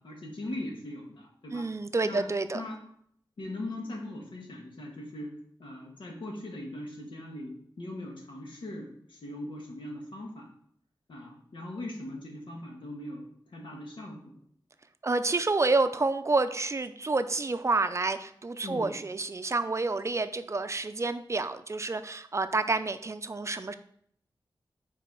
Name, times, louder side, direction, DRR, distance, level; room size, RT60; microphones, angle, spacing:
voice 1, 0.0-1.6 2.0-2.3 2.5-2.8 3.4-5.3 5.6-10.5 11.1-14.4 18.6-18.9, left 1 dB, 85° left, 0 dB, 1.6 m, -40 dB
voice 2, 1.5-2.6 15.0-23.7, right 3 dB, 35° right, 10 dB, 0.5 m, -29 dB
5.1 x 4.5 x 5.9 m, 0.67 s
wide cardioid pair, 85°, 8 cm